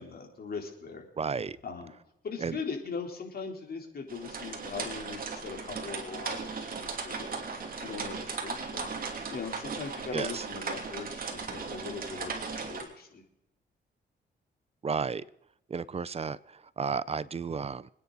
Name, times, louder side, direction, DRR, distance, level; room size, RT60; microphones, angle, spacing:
voice 1, 0.0-1.0 1.6-1.9 2.2-7.3 7.5-8.9 9.3-13.2, left 5 dB, 55° left, 3.8 m, -40 dB
voice 2, 1.2-1.6 2.4-2.6 10.1-10.4 14.8-15.2 15.7-17.9, right 5 dB, 35° right, 0.6 m, -33 dB
sound 1, 4.1-12.8, right 4 dB, 50° right, 2.8 m, -37 dB
25.5 x 9.8 x 4.1 m
cardioid pair, 100°, 19 cm